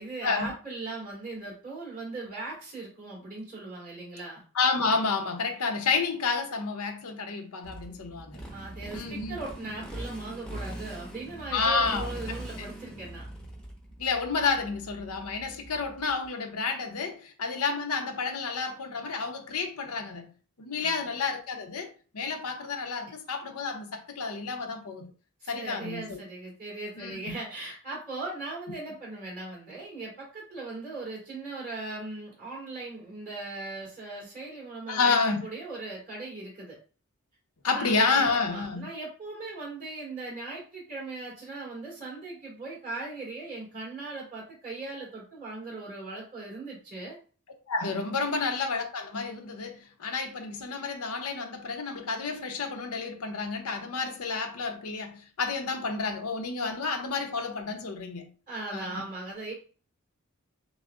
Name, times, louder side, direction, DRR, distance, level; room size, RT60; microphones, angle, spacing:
voice 1, 0.0-4.4 8.5-13.3 20.8-21.1 25.4-36.8 37.7-47.2 58.5-59.5, right 2 dB, 40° right, 2.0 m, -39 dB
voice 2, 4.5-8.4 8.9-9.4 11.5-12.1 14.0-20.3 20.6-25.1 25.5-26.2 27.0-27.3 34.9-35.4 37.6-38.9 47.7-58.3 58.7-59.0, left 4 dB, 85° left, 0.8 m, -30 dB
Motorcycle, 7.6-16.3, right 1 dB, 5° left, 0.9 m, -41 dB
6.0 x 2.1 x 2.4 m
head